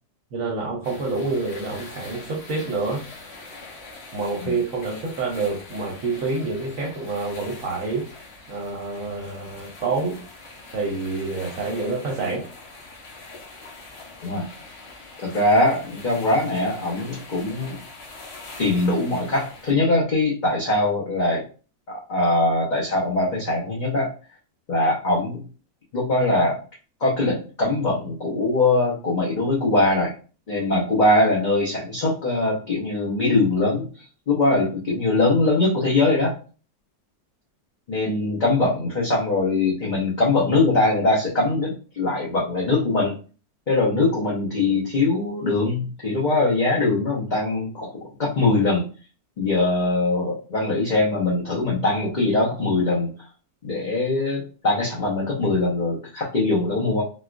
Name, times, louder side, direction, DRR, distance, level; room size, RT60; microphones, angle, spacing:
voice 1, 0.3-3.0 4.1-8.0 8.5-10.2 10.7-12.5, right 3 dB, 60° right, -2 dB, 1.1 m, -27 dB
sound 1, 0.8-19.7, left 3 dB, 85° left, 1.5 m, -43 dB
voice 2, 15.2-17.8 18.6-21.4 21.9-24.1 24.7-25.4 25.9-26.6 27.0-30.1 30.5-36.3 37.9-43.2 43.7-47.9 48.2-48.9 49.4-53.1 53.6-57.0, left 2 dB, 40° left, -5 dB, 0.6 m, -22 dB
4.0 x 2.3 x 2.4 m, 0.36 s
omnidirectional pair, 1.7 m